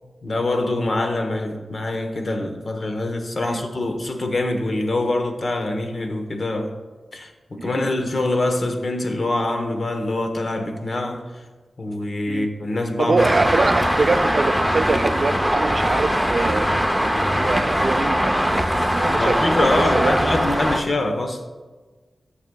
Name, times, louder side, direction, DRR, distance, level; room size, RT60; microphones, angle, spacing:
voice 1, 0.2-6.7 7.1-11.3 11.8-13.3 17.0-17.1 19.1-21.4, left 2 dB, 50° left, 0.9 m, -24 dB
voice 2, 7.6-7.9 12.3-12.5 13.0-17.0 17.3-20.3, right 3 dB, 50° right, 0.3 m, -24 dB
Traffic noise roadway noise, 13.2-20.8, equal, ahead, 0.5 m, -21 dB
13.5 x 6.6 x 2.3 m
wide cardioid pair, 85°, 0 cm